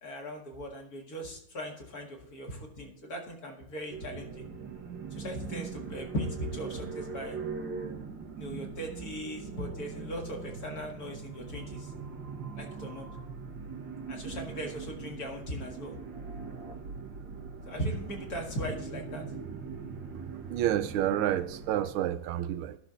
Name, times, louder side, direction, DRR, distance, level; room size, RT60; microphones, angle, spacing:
voice 1, 0.0-4.5 5.1-7.4 8.4-11.9 12.6-13.1 14.1-16.0 17.7-19.2, equal, 50° left, 1 dB, 2.2 m, -38 dB
sound 1, 3.9-21.9, right 5 dB, 65° right, 1.9 m, -41 dB
voice 2, 20.5-22.8, right 11 dB, 90° right, 13 dB, 1.5 m, -29 dB
11.5 x 6.3 x 3.8 m, 0.70 s
omnidirectional pair, 2.2 m